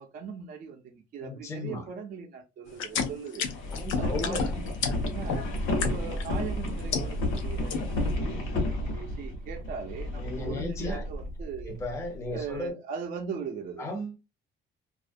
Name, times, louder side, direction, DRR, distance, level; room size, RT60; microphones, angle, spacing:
voice 1, 0.0-3.5 3.9-5.5 5.7-11.8 12.3-13.9, right 6 dB, 45° right, 0.4 m, -40 dB
voice 2, 1.2-1.8 3.7-4.5 10.1-11.0 11.7-12.7 13.8-14.2, left 2 dB, 15° left, 0.5 m, -35 dB
sound 1, 2.7-6.3 6.7-7.4 7.7-8.1, left 5 dB, 85° left, 0.5 m, -31 dB
sound 2, 3.5-12.6, left 1 dB, 70° left, 1.0 m, -32 dB
2.3 x 2.1 x 2.5 m
cardioid pair, 145°, 20 cm